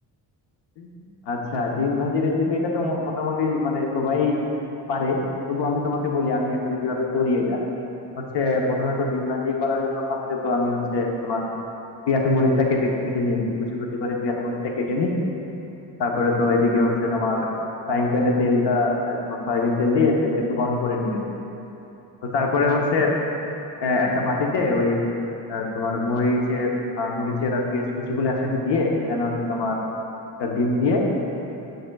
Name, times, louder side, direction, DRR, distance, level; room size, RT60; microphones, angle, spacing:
voice 1, 1.3-4.4 4.9-5.2 5.5-7.6 8.2-11.4 12.1-15.1 16.0-17.5 17.9-21.2 22.2-23.1 23.8-25.0 25.5-26.7 27.0-29.8 30.4-31.0, left 3 dB, 85° left, 0 dB, 1.0 m, -23 dB
8.8 x 6.5 x 2.3 m, 2.9 s
cardioid pair, 160°, 40 cm